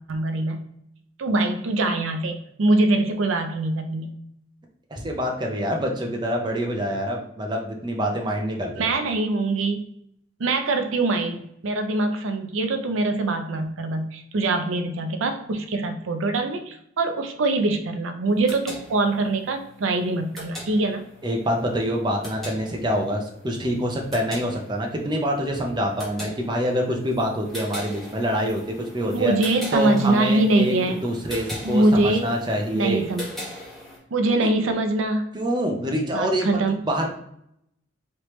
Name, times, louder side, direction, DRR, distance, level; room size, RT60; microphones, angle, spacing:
voice 1, 0.1-0.6 1.2-4.1 8.7-9.9 10.4-21.0 29.1-31.0 31.6-32.3 32.7-33.3 34.1-35.3 36.1-36.8, right 2 dB, 75° right, 6 dB, 0.5 m, -23 dB
voice 2, 4.9-8.9 21.2-29.3 29.7-30.7 31.0-33.0 34.4-34.5 35.3-36.5 36.8-37.1, equal, 20° right, 1 dB, 0.6 m, -26 dB
sound 1, 18.3-34.0, left 1 dB, ahead, 1.2 m, -40 dB
3.2 x 2.9 x 3.1 m, 0.74 s
head